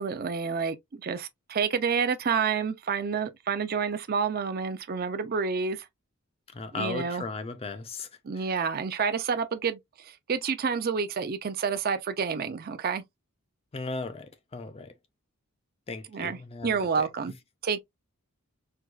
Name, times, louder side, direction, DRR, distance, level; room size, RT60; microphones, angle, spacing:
voice 1, 0.0-5.9 6.7-7.3 8.2-13.0 16.1-17.3 17.6-17.8, right 6 dB, 45° right, 0.5 m, -29 dB
voice 2, 6.5-8.1 13.7-14.9 15.9-17.1, left 3 dB, 25° left, 0.4 m, -36 dB
4.5 x 2.3 x 2.3 m
head